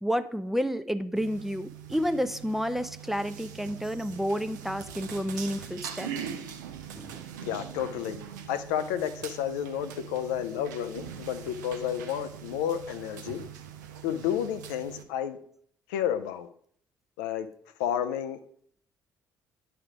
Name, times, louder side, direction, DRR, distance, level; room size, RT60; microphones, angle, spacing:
voice 1, 0.0-6.1 6.9-7.2, equal, 5° right, 11 dB, 0.4 m, -30 dB
sound 1, 1.2-15.0, right 8 dB, 75° right, 0.6 m, -42 dB
voice 2, 7.4-13.4 14.0-15.4 15.9-16.5 17.2-17.5 17.8-18.4, left 10 dB, 70° left, 10 dB, 0.5 m, -31 dB
9.6 x 3.4 x 4.9 m, 0.62 s
figure-of-eight pair, 50°, 10 cm